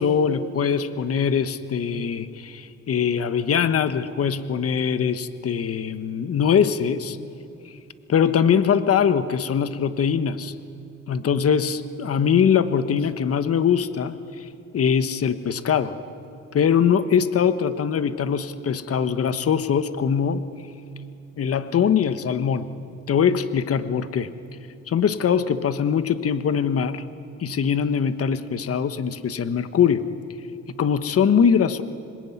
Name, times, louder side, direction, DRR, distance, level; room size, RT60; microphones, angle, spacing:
voice 1, 0.0-7.2 8.1-10.5 11.1-14.5 14.7-16.0 16.5-20.4 21.4-22.7 23.1-24.3 24.9-27.0 27.4-30.1 30.8-31.8, left 7 dB, 50° left, 11 dB, 1.3 m, -22 dB
26.0 x 20.5 x 9.6 m, 2.5 s
cardioid pair, 90°, 30 cm